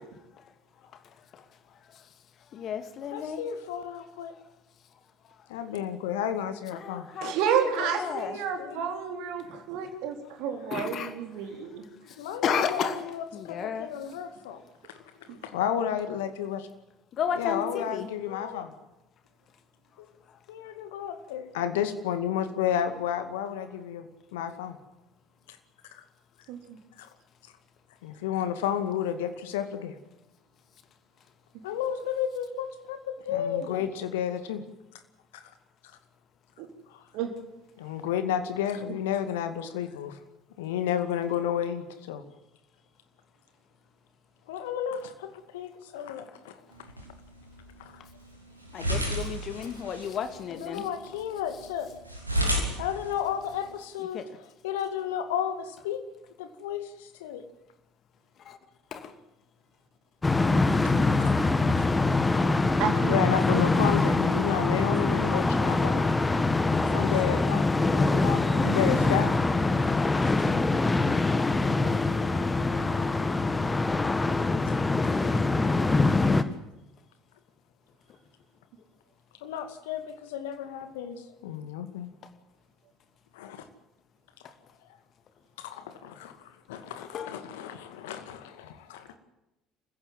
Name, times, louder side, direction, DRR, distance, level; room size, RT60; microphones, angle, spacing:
voice 1, 2.6-3.4 6.9-7.3 7.8-8.4 10.7-11.1 12.4-12.9 13.3-13.9 17.2-17.6 17.9-18.0 48.7-50.8 54.1-54.2 58.9-59.1 87.1-87.3, left 7 dB, 45° left, 9 dB, 2.6 m, -32 dB
voice 2, 3.1-4.3 5.5-7.1 7.8-7.9 8.2-8.8 10.5-10.6 12.2-14.6 15.2-16.7 17.3-18.7 20.5-24.8 25.9-26.0 27.0-27.1 28.0-30.0 31.6-34.6 35.3-35.4 36.9-37.0 37.8-40.2 40.6-42.2 44.5-46.6 47.8-48.0 50.5-51.9 52.8-56.0 56.4-57.4 60.8-60.9 61.2-61.5 61.8-61.9 62.8-66.2 66.9-69.3 70.2-70.5 72.9-73.0 74.7-74.8 75.6-75.7 79.4-82.1 83.3-83.7 85.6-89.2, left 9 dB, 70° left, 9 dB, 2.3 m, -32 dB
voice 3, 7.2-11.8 26.5-26.8 36.6-36.7 37.1-37.3 62.8-63.6, right 7 dB, 60° right, 6 dB, 3.9 m, -30 dB
sound 1, 46.7-53.7, equal, 90° right, 3.2 m, -34 dB
sound 2, 60.2-76.4, left 3 dB, 15° left, 1.8 m, -24 dB
28.0 x 15.5 x 7.7 m, 0.95 s
figure-of-eight pair, 60°, 0 cm